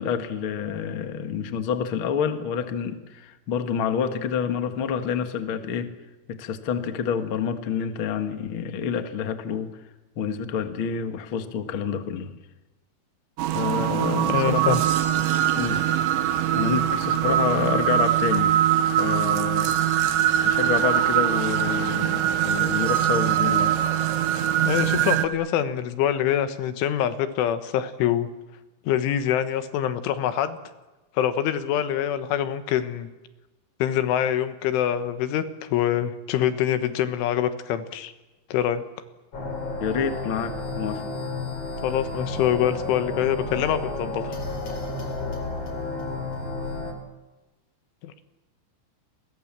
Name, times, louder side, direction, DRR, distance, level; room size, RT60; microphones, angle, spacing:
voice 1, 0.0-5.9 6.3-9.7 10.1-12.3 13.5-14.8 15.6-15.8 16.1-18.5 19.0-19.8 20.4-23.7 39.8-41.0, left 7 dB, 70° left, 8 dB, 1.2 m, -28 dB
sound 1, 13.4-25.3, right 11 dB, 75° right, 3.5 m, -22 dB
voice 2, 14.3-14.8 24.7-28.3 28.8-30.6 31.2-33.1 33.8-38.1 38.5-38.8 41.8-44.4 48.0-48.2, left 10 dB, 85° left, 11 dB, 3.9 m, -25 dB
sound 2, 39.3-46.9, left 2 dB, 35° left, 5.1 m, -32 dB
29.5 x 22.0 x 7.5 m, 1.1 s
omnidirectional pair, 5.4 m